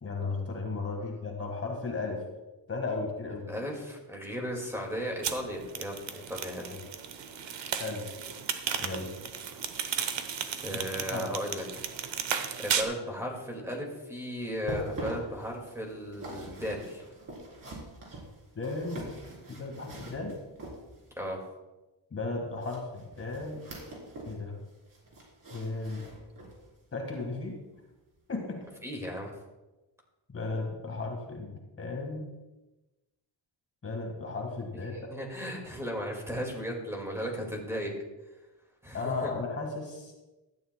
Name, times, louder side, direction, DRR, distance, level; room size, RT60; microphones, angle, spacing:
voice 1, 0.0-2.2 2.7-3.5 6.7-6.9 7.8-8.1 8.8-9.1 11.0-11.3 18.6-19.1 19.5-20.3 22.1-23.6 24.3-24.6 25.5-26.1 26.9-27.6 28.3-28.7 30.3-32.3 33.8-35.0 38.9-40.1, left 3 dB, 30° left, 1 dB, 1.7 m, -35 dB
voice 2, 3.5-6.7 10.6-11.8 12.3-17.0 21.2-21.4 28.8-29.3 34.9-37.9 38.8-39.3, equal, 5° right, 0 dB, 2.0 m, -36 dB
sound 1, 5.2-12.8, right 7 dB, 80° right, 1.1 m, -34 dB
sound 2, 14.5-21.2 22.6-24.4 24.7-26.7 27.1-27.3 27.8-27.9, right 1 dB, 45° right, 3.8 m, -43 dB
17.0 x 12.5 x 2.2 m, 1.1 s
wide cardioid pair, 180°, 44 cm